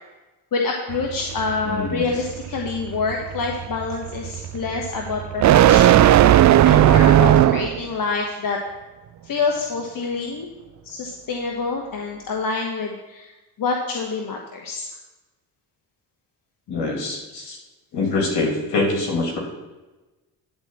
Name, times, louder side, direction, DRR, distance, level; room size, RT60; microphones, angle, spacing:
voice 1, 0.5-8.6 9.2-10.5 10.8-13.3 13.6-14.9, left 4 dB, 50° left, 1 dB, 1.3 m, -27 dB
sound 1, 0.9-7.9, right 12 dB, 45° right, 0.4 m, -16 dB
voice 2, 1.6-2.1 16.7-17.6 17.9-19.4, left 3 dB, 70° left, 0 dB, 3.0 m, -24 dB
10.5 x 4.2 x 7.3 m, 1.1 s
supercardioid pair, 65°, 43 cm